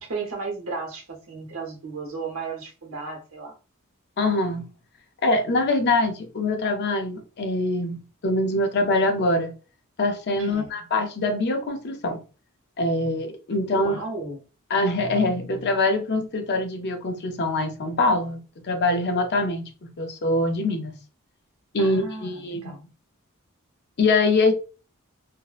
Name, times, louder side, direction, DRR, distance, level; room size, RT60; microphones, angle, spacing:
voice 1, 0.1-3.5 10.4-10.7 13.7-14.4 21.8-22.8, right 4 dB, 75° right, 0.8 m, -34 dB
voice 2, 4.2-4.7 5.2-9.5 10.0-12.2 12.8-14.0 14.7-20.9 21.7-22.8 24.0-24.5, left 2 dB, 50° left, 0.5 m, -24 dB
2.6 x 2.0 x 2.4 m
head